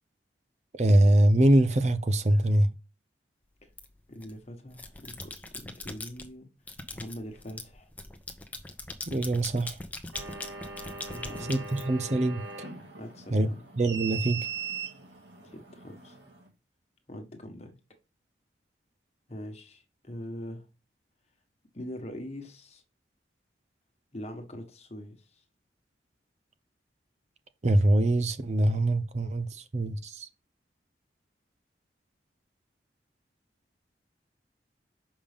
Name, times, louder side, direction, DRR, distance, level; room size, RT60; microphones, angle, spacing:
voice 1, 0.7-2.7 9.1-9.8 11.5-12.4 13.3-13.5 13.8-14.4 27.6-30.3, right 1 dB, 35° right, 0.5 m, -23 dB
sound 1, 3.8-4.3 4.7-6.3 6.7-12.4, left 2 dB, 10° left, 0.8 m, -41 dB
voice 2, 4.1-6.5 6.9-7.9 11.0-11.6 13.0-13.6 15.4-16.2 17.1-17.8 19.3-20.7 21.7-22.8 24.1-25.4, left 1 dB, 35° left, 1.4 m, -43 dB
sound 2, 10.1-16.5, right 5 dB, 75° right, 2.2 m, -40 dB
6.9 x 5.3 x 3.5 m
head